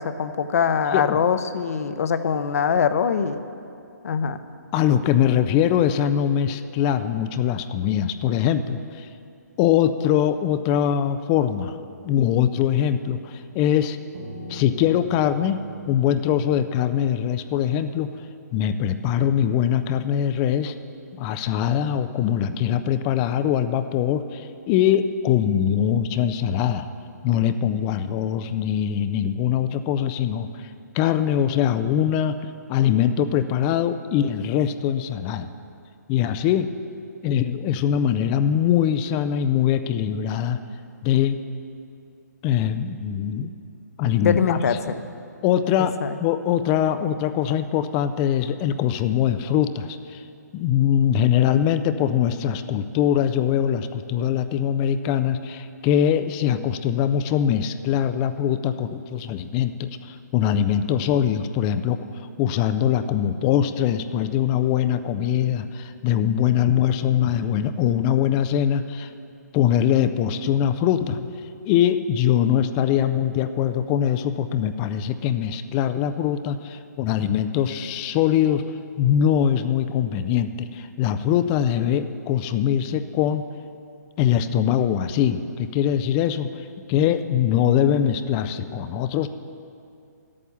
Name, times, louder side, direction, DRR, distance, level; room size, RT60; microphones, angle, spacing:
voice 1, 0.0-3.4 4.0-4.4 44.2-45.0 45.8-46.2, left 7 dB, 55° left, 11 dB, 0.7 m, -23 dB
voice 2, 4.7-9.1 9.6-11.8 12.0-14.0 14.5-18.1 18.5-20.7 21.1-26.9 27.2-30.7 30.9-32.4 32.7-35.5 36.1-36.7 37.2-40.6 41.0-41.4 42.4-43.5 44.0-44.6 45.4-45.9 46.2-50.2 50.5-69.1 69.5-71.3 71.7-78.6 79.0-83.4 84.2-89.3, left 9 dB, 20° left, 11 dB, 0.4 m, -22 dB
Piano, 14.1-19.4, right 1 dB, 40° right, 1.5 m, -43 dB
12.0 x 8.6 x 6.9 m, 2.5 s
hypercardioid pair, 150°, 10 cm